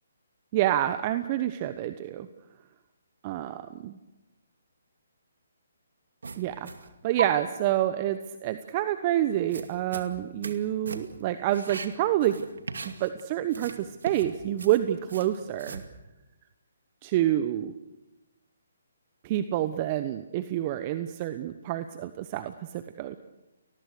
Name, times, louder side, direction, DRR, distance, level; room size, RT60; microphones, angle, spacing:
voice 1, 0.5-2.3 3.2-4.0 6.4-6.7 7.0-12.4 12.8-15.8 17.0-17.7 19.2-23.2, right 13 dB, 30° right, 11 dB, 1.0 m, -28 dB
sound 1, 6.2-6.9 7.2-7.3 9.3-10.6 10.9-11.2 11.5-13.2 13.5-15.9, right 4 dB, 70° right, 2.4 m, -38 dB
29.0 x 20.0 x 6.8 m, 1.0 s
figure-of-eight pair, 145°, 0 cm